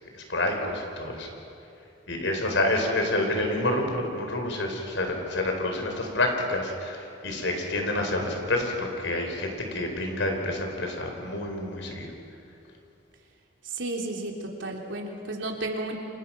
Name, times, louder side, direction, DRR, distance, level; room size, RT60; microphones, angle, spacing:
voice 1, 0.0-1.3 2.1-12.1, left 1 dB, 75° left, 3 dB, 4.7 m, -28 dB
voice 2, 13.7-16.0, right 2 dB, 75° right, 1 dB, 3.3 m, -33 dB
30.0 x 25.5 x 6.0 m, 2.8 s
head